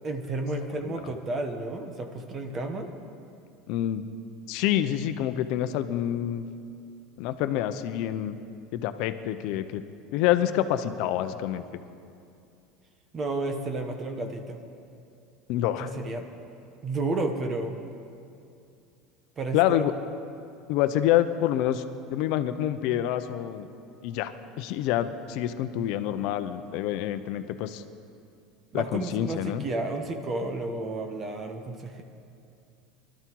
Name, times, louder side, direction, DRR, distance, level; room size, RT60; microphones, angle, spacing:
voice 1, 0.0-2.9 13.1-14.6 15.8-16.2 16.8-17.8 19.4-19.8 28.7-32.0, right 2 dB, 25° right, 5 dB, 1.2 m, -32 dB
voice 2, 3.7-4.1 4.5-6.4 7.2-8.4 8.7-9.8 10.1-11.6 15.5-15.9 19.5-19.9 20.7-21.8 22.1-23.7 24.0-24.3 24.6-27.8 28.7-29.6, left 12 dB, 65° left, 11 dB, 0.8 m, -27 dB
21.0 x 12.5 x 4.7 m, 2.5 s
supercardioid pair, 140°, 0 cm